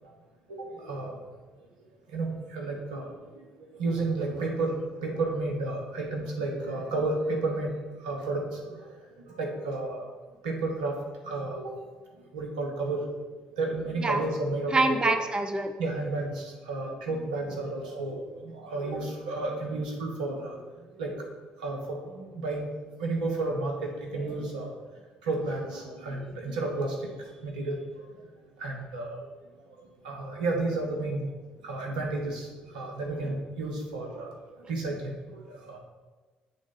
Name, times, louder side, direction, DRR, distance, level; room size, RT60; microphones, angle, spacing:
voice 1, 0.5-1.2 2.1-4.8 5.0-7.7 8.0-8.9 9.3-10.0 10.4-10.9 11.2-11.7 12.3-13.0 13.6-15.0 15.8-20.6 21.0-21.2 21.6-24.8 25.2-27.1 27.4-27.8 28.6-29.2 29.8-31.3 31.6-34.3 34.6-35.8, right 2 dB, 80° right, 0 dB, 0.8 m, -32 dB
voice 2, 14.7-15.7, right 2 dB, 20° right, 6 dB, 0.6 m, -25 dB
6.8 x 3.6 x 3.8 m, 1.3 s
figure-of-eight pair, 45°, 4 cm